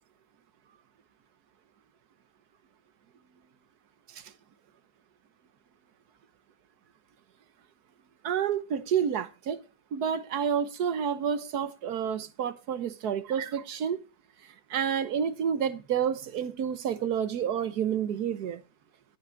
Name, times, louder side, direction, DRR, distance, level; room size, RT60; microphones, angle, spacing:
voice 1, 8.2-9.6 9.9-14.0 14.7-18.6, right 8 dB, 65° right, 1.5 m, -29 dB
13.0 x 5.8 x 6.4 m
omnidirectional pair, 1.8 m